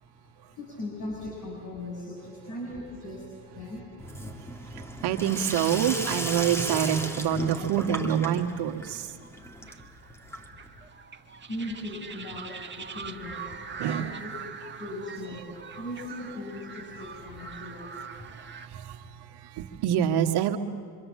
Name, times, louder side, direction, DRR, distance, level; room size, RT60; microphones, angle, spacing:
voice 1, 0.0-4.3 10.1-14.3 14.8-17.9 18.3-18.4, left 1 dB, 50° left, -3 dB, 7.1 m, -39 dB
Sink (filling or washing), 4.0-10.8, equal, 5° left, 2.5 m, -36 dB
voice 2, 4.2-9.2 13.7-14.2 15.7-15.8 18.2-20.6, right 10 dB, 65° right, 5 dB, 1.8 m, -28 dB
sound 1, 8.9-18.7, right 5 dB, 25° right, 1.7 m, -43 dB
26.0 x 24.5 x 7.6 m, 2.1 s
supercardioid pair, 80°, 42 cm